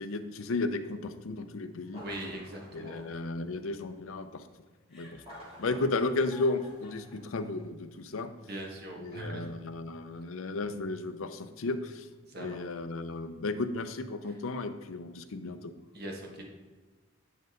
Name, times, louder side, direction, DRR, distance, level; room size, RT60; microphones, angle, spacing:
voice 1, 0.0-2.0 2.7-4.5 4.9-5.2 5.6-8.3 9.0-12.1 12.4-15.7, left 3 dB, 75° left, 9 dB, 0.6 m, -34 dB
sound 1, 1.8-4.0 5.1-7.6, equal, 25° right, 2.5 m, -52 dB
voice 2, 2.0-3.1 8.4-9.4 12.3-12.6 15.9-16.4, right 1 dB, 45° right, 0 dB, 1.4 m, -41 dB
Chuckle chortle, 4.9-7.1, left 2 dB, 5° right, 2.5 m, -54 dB
10.0 x 5.3 x 3.8 m, 1.4 s
head